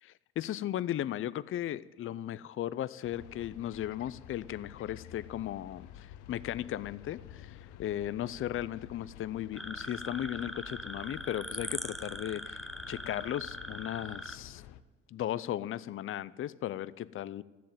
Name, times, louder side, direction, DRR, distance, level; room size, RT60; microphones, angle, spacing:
voice 1, 0.0-12.6 12.9-14.6 15.1-17.4, left 12 dB, 45° left, 18 dB, 0.5 m, -36 dB
sound 1, 3.0-14.8, left 11 dB, 80° left, 0.7 m, -51 dB
sound 2, 9.6-14.4, equal, ahead, 0.7 m, -41 dB
13.0 x 7.6 x 9.4 m, 1.3 s
supercardioid pair, 75°, 30 cm